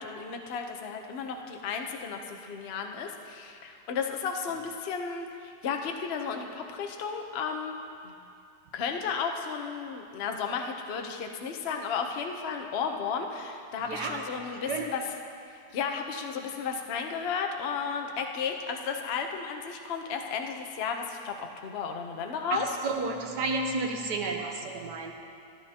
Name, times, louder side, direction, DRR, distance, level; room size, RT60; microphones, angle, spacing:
voice 1, 0.0-7.8 8.0-8.1 8.7-15.0 15.7-22.7, left 6 dB, 65° left, 3 dB, 0.6 m, -33 dB
voice 2, 13.8-14.2 14.6-14.9 22.5-25.1, right 3 dB, 60° right, 2 dB, 1.4 m, -31 dB
14.5 x 13.0 x 2.9 m, 2.4 s
omnidirectional pair, 2.2 m